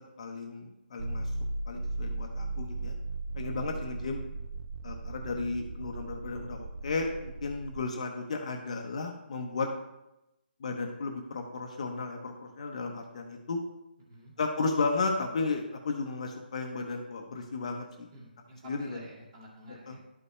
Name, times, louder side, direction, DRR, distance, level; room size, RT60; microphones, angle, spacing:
voice 1, 0.2-1.3 1.7-2.9 3.4-4.2 4.8-9.7 10.6-13.6 14.4-18.1 18.6-19.0 19.7-20.0, left 3 dB, 40° left, 2 dB, 0.9 m, -34 dB
sound 1, 1.0-7.8, right 2 dB, 45° right, 0.5 m, -37 dB
voice 2, 18.1-20.0, right 1 dB, 25° right, -5 dB, 2.2 m, -49 dB
12.0 x 5.4 x 3.2 m, 0.92 s
hypercardioid pair, 170°, 6 cm